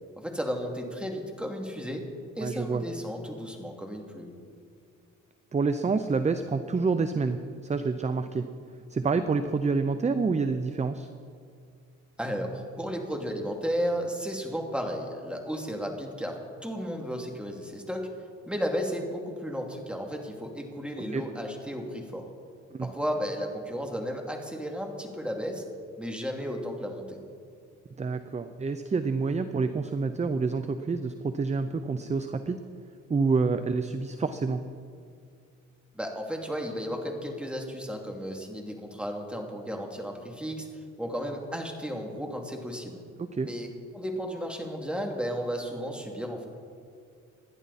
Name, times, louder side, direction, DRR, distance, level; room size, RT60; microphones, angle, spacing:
voice 1, 0.2-2.1 2.4-4.3 12.2-18.1 18.5-22.3 22.8-25.6 26.0-27.2 35.9-40.7 41.0-43.0 43.4-43.7 43.9-46.5, equal, 5° right, 2 dB, 2.7 m, -34 dB
voice 2, 2.4-2.8 5.5-8.5 8.9-11.1 21.1-21.2 22.7-22.9 28.0-32.6 33.1-34.6 43.2-43.5, right 4 dB, 25° right, 10 dB, 0.7 m, -28 dB
27.5 x 11.0 x 4.2 m, 2.3 s
cardioid pair, 90°, 30 cm